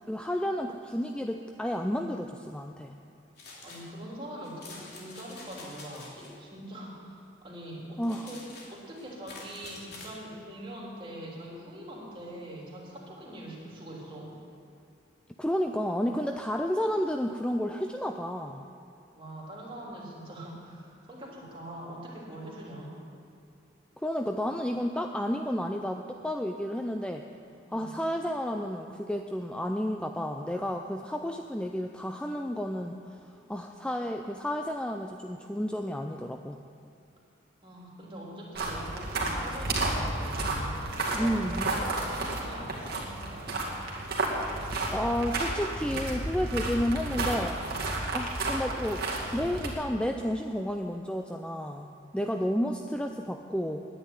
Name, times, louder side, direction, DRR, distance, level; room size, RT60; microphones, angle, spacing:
voice 1, 0.1-2.9 8.0-8.3 15.4-18.7 24.0-27.2 27.7-36.6 41.1-41.7 44.9-47.6 48.1-49.0 49.3-53.9, equal, 5° left, 4 dB, 0.4 m, -31 dB
sound 1, 3.4-3.9 4.4-6.3 8.0-10.2, left 3 dB, 55° left, 2.9 m, -47 dB
voice 2, 3.6-8.4 8.7-14.3 19.1-23.0 27.6-28.0 37.6-40.7 41.2-43.8 53.0-53.2, right 1 dB, 25° right, -4 dB, 3.2 m, -43 dB
sound 2, 38.6-49.7, right 2 dB, 55° right, 2.3 m, -32 dB
10.5 x 9.9 x 9.4 m, 2.6 s
head